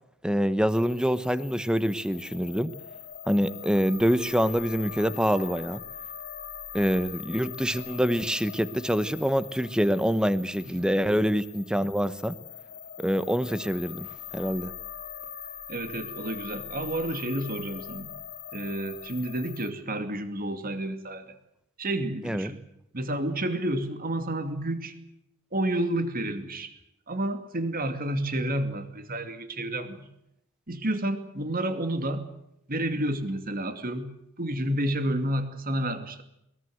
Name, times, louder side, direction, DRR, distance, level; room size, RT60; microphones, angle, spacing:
voice 1, 0.2-2.8 3.3-5.8 6.7-12.4 13.0-14.1 14.3-14.7 22.2-22.5, equal, 5° right, 1.0 m, -25 dB
sound 1, 0.7-19.7, left 9 dB, 50° left, 2.5 m, -42 dB
voice 2, 15.7-18.1 18.5-21.4 21.8-22.6 22.9-25.0 25.5-26.7 27.1-30.1 30.7-32.2 32.7-34.1 34.4-36.2, right 1 dB, 45° right, 2.5 m, -30 dB
22.0 x 21.0 x 7.9 m
head